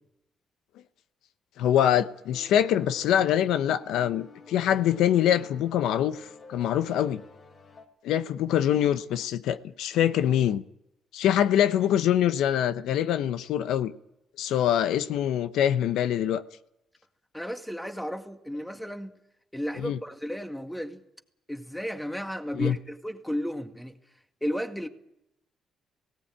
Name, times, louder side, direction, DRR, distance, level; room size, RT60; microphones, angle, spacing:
voice 1, 1.6-7.2 8.0-10.6 11.1-13.9 14.4-16.4 19.8-20.0 22.5-22.8, left 10 dB, 85° left, 0.9 m, -24 dB
sound 1, 2.3-7.9, left 3 dB, 55° left, 3.7 m, -50 dB
voice 2, 17.3-19.1 19.5-21.0 21.5-24.0 24.4-24.9, equal, 5° left, 1.9 m, -33 dB
18.0 x 18.0 x 8.8 m
cardioid pair, 90°, 0 cm